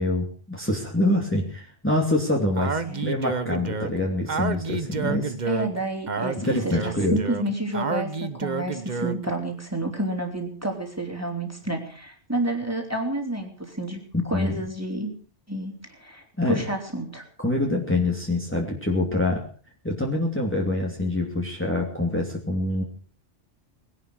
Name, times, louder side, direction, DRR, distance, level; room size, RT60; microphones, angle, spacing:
voice 1, 0.0-5.3 6.4-7.2 14.3-14.5 16.4-16.6 17.4-19.4 19.8-22.8, left 1 dB, 10° left, -1 dB, 2.8 m, -25 dB
Speech, 2.6-9.3, right 4 dB, 40° right, 1.1 m, -30 dB
voice 2, 5.5-14.0 14.3-15.1 15.5-17.2, right 1 dB, 10° right, 3 dB, 3.6 m, -30 dB
20.0 x 11.5 x 6.3 m, 0.42 s
omnidirectional pair, 1.2 m